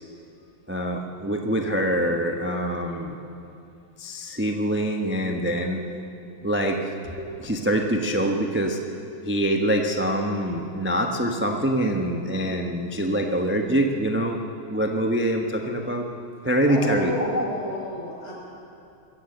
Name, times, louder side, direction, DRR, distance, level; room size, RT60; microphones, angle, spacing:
voice 1, 0.7-3.2 4.0-5.8 6.4-6.8 7.2-8.8 9.2-14.4 14.7-16.0 16.4-17.4, right 1 dB, 10° right, 3 dB, 0.7 m, -24 dB
voice 2, 16.7-18.3, left 1 dB, 60° left, -5 dB, 7.1 m, -32 dB
24.0 x 14.5 x 8.0 m, 2.6 s
omnidirectional pair, 2.3 m